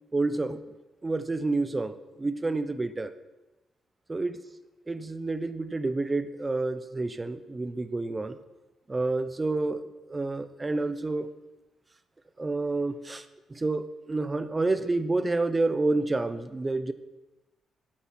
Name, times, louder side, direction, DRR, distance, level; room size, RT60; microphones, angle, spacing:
voice 1, 0.1-0.6 1.0-3.1 4.1-4.4 4.9-8.4 8.9-11.3 12.4-13.2 13.5-16.9, right 2 dB, 15° right, 12 dB, 0.4 m, -29 dB
8.7 x 7.3 x 5.6 m, 1.1 s
cardioid pair, 150°, 0 cm